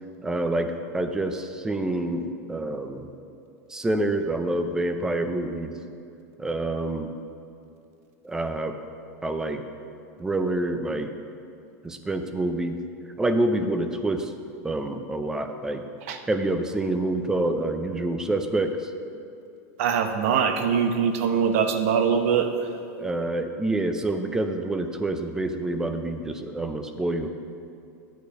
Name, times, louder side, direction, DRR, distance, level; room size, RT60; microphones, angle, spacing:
voice 1, 0.2-3.1 3.7-5.7 6.4-7.1 8.2-8.8 9.2-9.6 10.2-11.1 11.8-12.8 13.2-14.3 14.6-15.8 16.3-18.9 23.0-27.3, right 2 dB, 5° right, 7 dB, 0.5 m, -27 dB
voice 2, 19.8-22.7, right 7 dB, 60° right, 7 dB, 0.9 m, -23 dB
9.4 x 8.2 x 5.3 m, 2.5 s
supercardioid pair, 165°, 9 cm